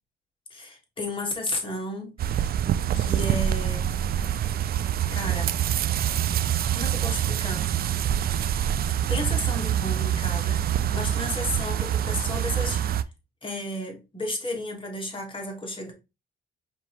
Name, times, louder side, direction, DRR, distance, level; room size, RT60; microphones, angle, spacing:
voice 1, 0.5-2.1 2.9-4.1 5.1-5.6 6.7-7.7 8.8-12.8 13.4-15.9, left 1 dB, 25° left, 1.6 m, -33 dB
sound 1, 2.2-13.0, right 10 dB, 50° right, 0.4 m, -25 dB
5.0 x 2.8 x 3.1 m
cardioid pair, 90°, 20 cm